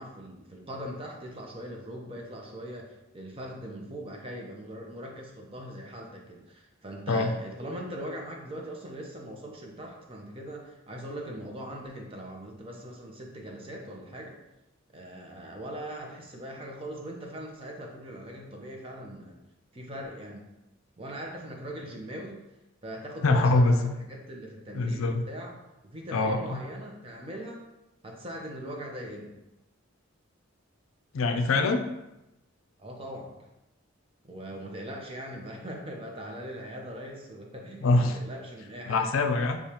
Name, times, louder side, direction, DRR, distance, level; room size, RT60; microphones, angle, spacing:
voice 1, 0.0-14.4 14.9-19.4 19.7-20.4 21.0-22.4 22.8-25.6 25.9-27.6 28.0-29.4 32.8-33.5 34.2-39.1, right 1 dB, 25° right, 0 dB, 0.6 m, -40 dB
voice 2, 23.2-24.0 24.7-25.3 26.1-26.6 31.1-31.8 37.8-38.2 38.9-39.6, left 3 dB, 75° left, 6 dB, 0.4 m, -24 dB
6.5 x 2.4 x 2.8 m, 0.93 s
head